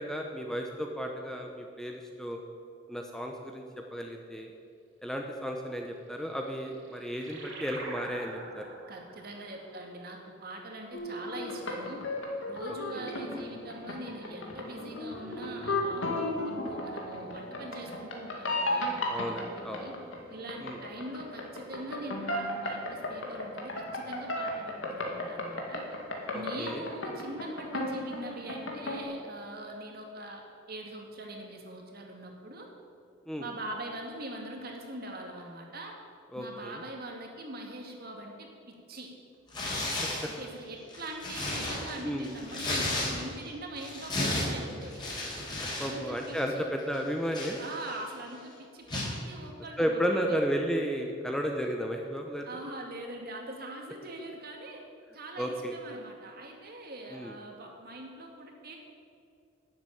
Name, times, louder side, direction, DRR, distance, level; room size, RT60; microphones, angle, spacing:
voice 1, 0.0-2.4 2.9-3.6 3.9-4.5 5.0-8.7 13.0-13.1 19.1-19.9 20.6-20.8 26.3-26.8 27.1-27.2 33.3-33.5 36.3-36.8 39.8-39.9 42.0-42.3 45.8-47.6 49.8-52.4 55.4-55.7 57.1-57.3, equal, ahead, 2 dB, 0.8 m, -33 dB
sound 1, 6.3-11.4, right 2 dB, 75° right, 2.5 m, -46 dB
voice 2, 8.9-12.0 12.5-19.9 20.3-25.8 26.3-32.7 33.4-35.9 36.3-39.1 40.3-45.0 45.8-46.7 47.6-50.4 52.5-54.8 55.1-58.8, right 1 dB, 50° right, 2 dB, 2.2 m, -42 dB
sound 2, 10.9-29.0, left 2 dB, 75° left, 2.4 m, -34 dB
Tearing, 39.5-40.3 40.8-43.5 43.8-45.9 46.2-46.4 46.9-48.1 48.9-49.2, left 2 dB, 20° left, 4.2 m, -33 dB
12.0 x 7.8 x 9.2 m, 2.4 s
head